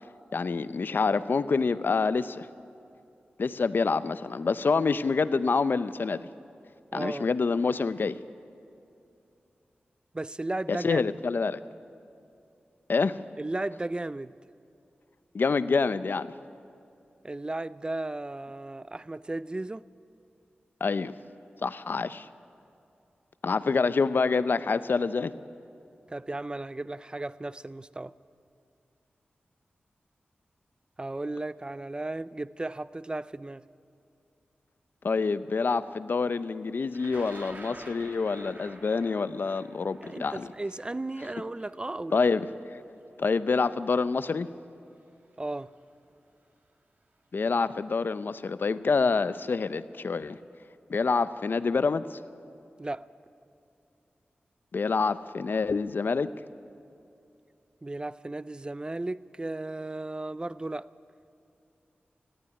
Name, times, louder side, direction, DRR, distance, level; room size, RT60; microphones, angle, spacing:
voice 1, 0.3-2.5 3.4-6.3 6.9-8.2 10.7-11.6 12.9-13.2 15.3-16.3 20.8-21.1 21.6-22.3 23.4-25.3 35.0-40.5 42.1-42.8 43.2-44.5 47.3-50.4 50.9-52.2 54.7-56.3, left 4 dB, 65° left, 0.6 m, -27 dB
voice 2, 6.9-7.3 10.1-11.0 13.4-14.3 17.2-19.9 26.1-28.1 31.0-33.7 40.0-42.2 45.4-45.7 52.8-53.1 57.8-60.9, right 2 dB, 25° right, 0.5 m, -35 dB
Thunder, 36.9-42.9 43.9-44.0 45.1-45.3 45.7-46.1, right 2 dB, 55° right, 2.7 m, -48 dB
19.0 x 14.5 x 9.8 m
cardioid pair, 50°, 4 cm